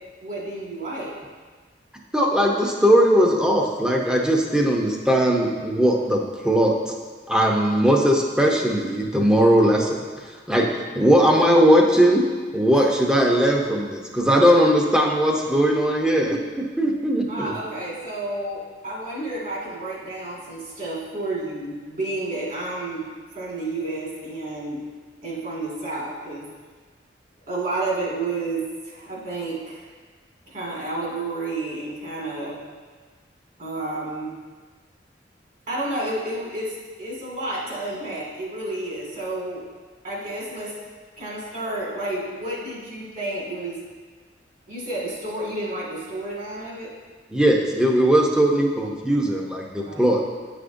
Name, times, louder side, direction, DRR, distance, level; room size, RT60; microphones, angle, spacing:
voice 1, 0.2-1.1 12.7-12.8 17.3-23.1 23.3-24.8 25.2-26.5 27.5-29.8 30.5-32.6 33.6-34.3 35.7-39.6 40.0-40.7 41.2-43.8 44.7-46.9 49.8-50.1, right 2 dB, 50° right, -5 dB, 2.0 m, -30 dB
voice 2, 2.1-6.8 7.3-10.0 10.5-12.2 12.5-17.5 47.3-50.2, equal, 5° right, 0 dB, 0.6 m, -19 dB
9.1 x 5.0 x 2.6 m, 1.5 s
head